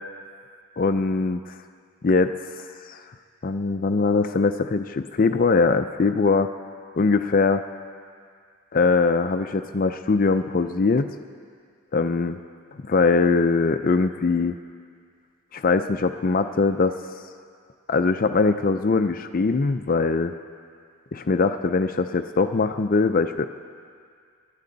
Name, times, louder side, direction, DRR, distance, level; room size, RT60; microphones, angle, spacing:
voice 1, 0.8-1.5 2.0-3.0 3.4-6.5 7.0-7.6 8.7-11.1 11.9-12.4 12.8-14.6 15.5-17.0 17.9-20.3 21.1-23.5, left 4 dB, 40° left, 8 dB, 0.4 m, -22 dB
28.0 x 12.5 x 4.0 m, 2.2 s
head